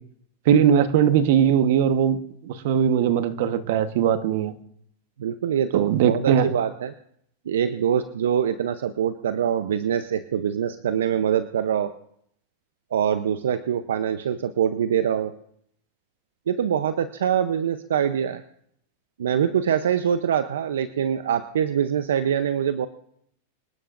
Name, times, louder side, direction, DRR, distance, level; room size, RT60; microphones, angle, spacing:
voice 1, 0.5-2.2 2.4-4.5 5.7-6.5, right 8 dB, 65° right, 10 dB, 1.2 m, -20 dB
voice 2, 5.2-6.9 7.5-11.9 12.9-15.3 16.5-18.4 19.2-22.9, right 8 dB, 80° right, 11 dB, 0.7 m, -24 dB
25.5 x 11.5 x 2.6 m, 0.69 s
hypercardioid pair, 110°, 0 cm